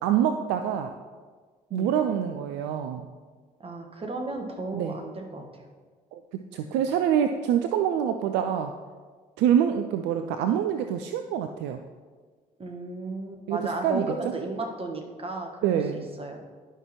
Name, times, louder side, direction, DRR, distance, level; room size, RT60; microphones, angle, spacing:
voice 1, 0.0-1.0 1.7-3.1 4.7-5.0 6.1-6.2 6.5-8.7 9.4-11.8 13.5-14.1 15.6-16.0, right 9 dB, 60° right, 7 dB, 0.4 m, -25 dB
voice 2, 3.6-5.6 12.6-16.4, right 2 dB, 30° right, 2 dB, 1.3 m, -34 dB
10.5 x 5.6 x 3.0 m, 1.5 s
figure-of-eight pair, 45°, 20 cm